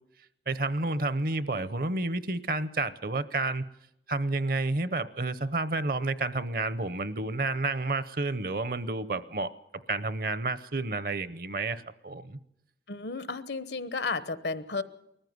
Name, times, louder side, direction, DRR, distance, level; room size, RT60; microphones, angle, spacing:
voice 1, 0.5-3.6 4.1-9.5 9.9-12.4, right 2 dB, 55° right, 0.8 m, -30 dB
voice 2, 12.9-14.8, left 4 dB, 75° left, 1.0 m, -33 dB
20.0 x 14.5 x 9.5 m
head